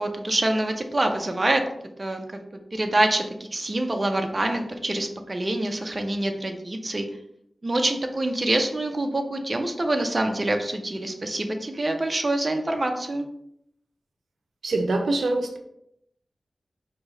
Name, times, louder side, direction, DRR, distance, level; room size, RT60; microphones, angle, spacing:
voice 1, 0.0-1.6 2.0-2.4 2.7-7.1 7.6-13.3, right 1 dB, 30° right, 4 dB, 0.5 m, -26 dB
voice 2, 14.6-15.6, right 2 dB, 85° right, 4 dB, 0.5 m, -24 dB
4.8 x 2.7 x 3.1 m, 0.75 s
wide cardioid pair, 90°, 0 cm